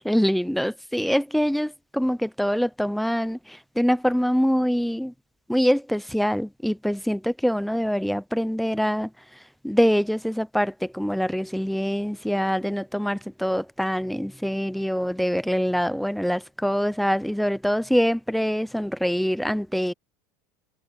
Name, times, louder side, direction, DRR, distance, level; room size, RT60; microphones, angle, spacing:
voice 1, 0.0-5.1 5.5-9.1 9.6-19.9, equal, ahead, 0.6 m, -24 dB
supercardioid pair, 150°, 9 cm